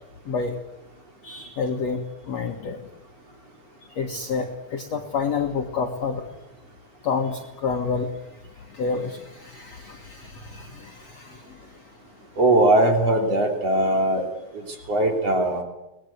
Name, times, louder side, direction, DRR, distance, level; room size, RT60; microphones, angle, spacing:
voice 1, 0.3-0.6 1.2-2.8 4.0-6.3 7.0-8.1 8.7-11.6 14.8-14.9, left 5 dB, 55° left, 2 dB, 2.2 m, -29 dB
voice 2, 12.4-14.3 14.5-15.6, right 1 dB, 40° right, 3 dB, 4.0 m, -20 dB
24.0 x 19.5 x 9.5 m, 0.95 s
omnidirectional pair, 4.7 m